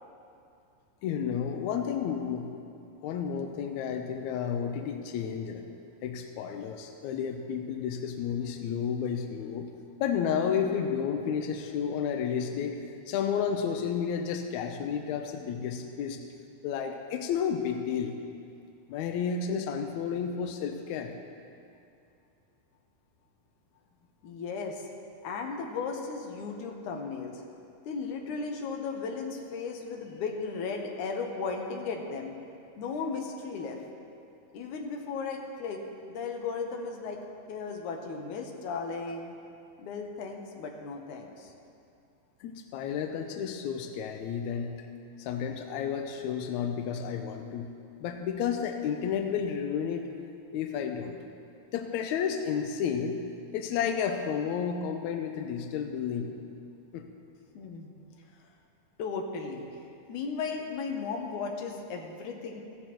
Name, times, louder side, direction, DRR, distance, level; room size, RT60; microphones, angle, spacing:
voice 1, 1.0-2.5 3.0-5.6 6.0-9.7 10.0-16.2 16.6-18.1 18.9-21.1 42.4-44.8 45.2-47.7 48.0-50.1 50.5-51.2 51.7-53.2 53.5-56.3 56.9-57.0, left 7 dB, 90° left, 5 dB, 1.6 m, -31 dB
voice 2, 24.2-24.8 25.2-27.4 27.9-32.3 32.8-33.8 34.5-35.8 36.1-37.2 37.5-39.4 39.8-41.5 57.5-57.9 59.0-59.7 60.1-62.6, left 4 dB, 65° left, 2 dB, 2.2 m, -35 dB
16.0 x 13.5 x 3.1 m, 2.5 s
omnidirectional pair, 4.3 m